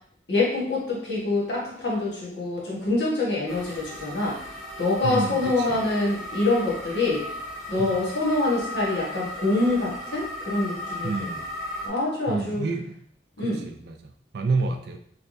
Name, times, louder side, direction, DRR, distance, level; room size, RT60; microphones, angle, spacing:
voice 1, 0.3-4.4 4.8-7.2 7.7-11.1 11.8-12.6 13.4-13.6, left 2 dB, 70° left, -5 dB, 1.3 m, -25 dB
sound 1, 3.5-11.9, left 1 dB, ahead, 0.9 m, -36 dB
voice 2, 5.0-5.8 7.8-8.0 11.0-11.4 12.3-13.0 13.4-15.0, right 3 dB, 65° right, 5 dB, 0.4 m, -29 dB
3.3 x 3.3 x 2.6 m, 0.66 s
head